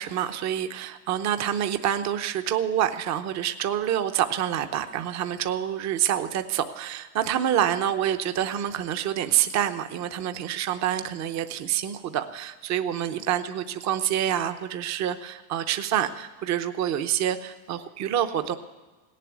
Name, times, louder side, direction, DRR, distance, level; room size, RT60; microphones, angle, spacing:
voice 1, 0.0-18.6, right 10 dB, 40° right, 8 dB, 0.8 m, -27 dB
17.5 x 7.6 x 9.6 m, 1.3 s
supercardioid pair, 130°, 44 cm